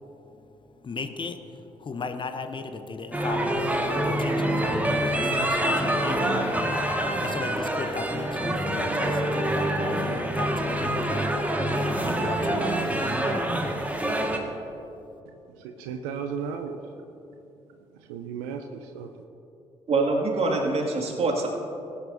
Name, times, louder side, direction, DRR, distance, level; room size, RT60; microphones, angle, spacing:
voice 1, 0.8-11.4 11.7-13.0, left 4 dB, 35° left, 8 dB, 0.8 m, -36 dB
sound 1, 3.1-14.4, right 1 dB, 10° right, 1.6 m, -26 dB
voice 2, 15.6-16.8 18.1-19.1, right 6 dB, 70° right, 6 dB, 0.5 m, -34 dB
voice 3, 19.9-21.5, right 3 dB, 45° right, 0 dB, 2.0 m, -24 dB
18.5 x 9.8 x 2.6 m, 2.9 s
figure-of-eight pair, 40°, 14 cm